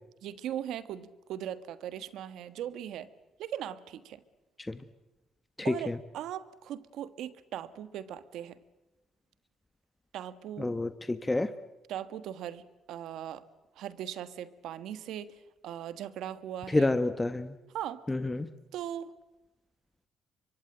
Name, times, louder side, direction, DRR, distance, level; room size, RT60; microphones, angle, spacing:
voice 1, 0.2-3.1 3.4-4.2 5.6-8.6 10.1-10.7 11.9-13.4 13.7-16.9 17.7-18.0 18.7-19.1, right 10 dB, 85° right, 14 dB, 1.4 m, -39 dB
voice 2, 5.6-6.0 10.6-11.5 16.7-17.6 18.1-18.5, left 2 dB, 15° left, 11 dB, 1.2 m, -29 dB
24.5 x 24.0 x 9.0 m, 1.0 s
cardioid pair, 90°, 0 cm